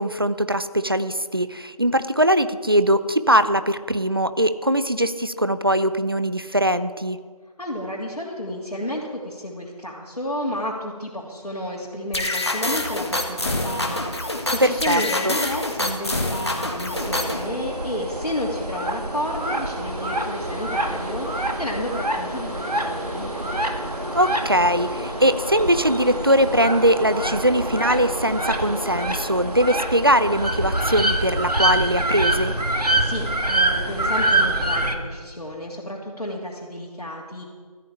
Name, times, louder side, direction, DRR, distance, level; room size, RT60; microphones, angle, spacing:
voice 1, 0.0-7.2 14.6-15.4 24.1-32.5, equal, 35° right, 12 dB, 0.6 m, -21 dB
voice 2, 7.6-23.3 33.0-37.4, left 1 dB, 80° left, -5 dB, 3.2 m, -31 dB
sound 1, 12.1-17.5, left 1 dB, 45° left, 1.8 m, -26 dB
sound 2, 16.9-34.9, right 1 dB, 85° right, 1.9 m, -26 dB
sound 3, 19.4-29.1, equal, 60° right, 2.2 m, -36 dB
14.5 x 8.3 x 8.8 m, 1.5 s
figure-of-eight pair, 175°, 20 cm